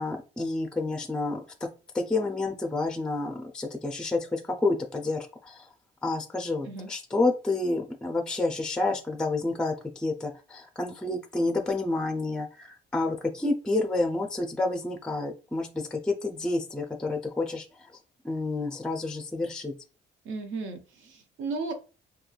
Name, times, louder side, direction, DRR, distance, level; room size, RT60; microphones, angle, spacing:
voice 1, 0.0-1.4 1.9-5.7 6.0-17.9 18.2-19.7, left 2 dB, 5° left, 4 dB, 0.4 m, -29 dB
voice 2, 20.2-21.7, right 3 dB, 75° right, 5 dB, 0.5 m, -35 dB
3.0 x 2.2 x 2.3 m, 0.33 s
cardioid pair, 90°, 20 cm